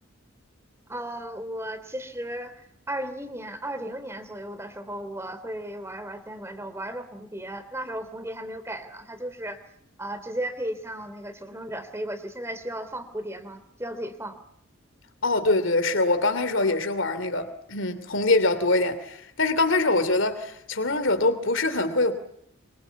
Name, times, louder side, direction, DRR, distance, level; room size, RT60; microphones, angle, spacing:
voice 1, 0.9-9.6 10.0-14.4, right 1 dB, 15° right, 3.1 m, -35 dB
voice 2, 15.2-22.1, left 2 dB, 65° left, 2.9 m, -24 dB
27.5 x 25.5 x 8.3 m
head